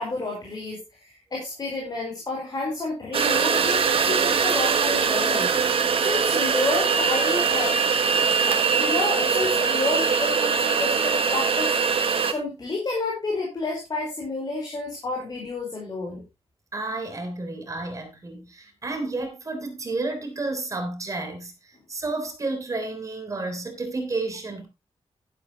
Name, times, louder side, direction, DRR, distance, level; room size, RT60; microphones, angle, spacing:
voice 1, 0.0-5.5 6.0-7.8 8.5-11.7 12.3-16.2, left 2 dB, 40° left, 4.9 m, -30 dB
sound 1, 3.1-12.3, right 6 dB, 60° right, 1.5 m, -22 dB
voice 2, 16.7-24.7, right 2 dB, 30° right, 3.4 m, -31 dB
12.5 x 11.0 x 3.0 m
wide cardioid pair, 160°, 11 cm